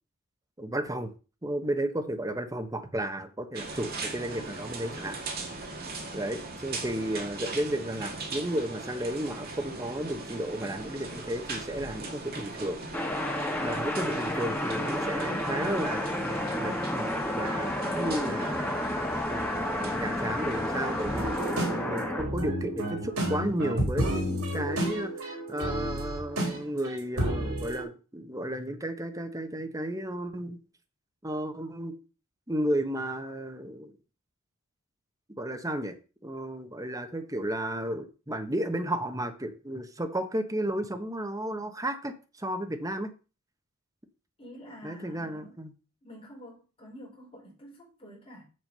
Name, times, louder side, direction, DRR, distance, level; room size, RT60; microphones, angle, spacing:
voice 1, 0.6-1.1 1.4-5.2 6.1-12.8 13.6-18.9 19.3-30.6 31.2-32.0 32.5-33.9 35.4-35.9 36.2-43.1 44.8-45.7, right 1 dB, 15° right, 1.2 m, -33 dB
sound 1, 3.5-21.5, right 3 dB, 45° right, 2.2 m, -40 dB
sound 2, 12.9-22.2, left 1 dB, 10° left, 1.6 m, -31 dB
sound 3, 21.0-27.8, right 1 dB, 85° right, 3.8 m, -31 dB
voice 2, 44.4-45.6 46.0-48.4, equal, 25° left, 4.5 m, -48 dB
7.7 x 7.3 x 5.6 m
head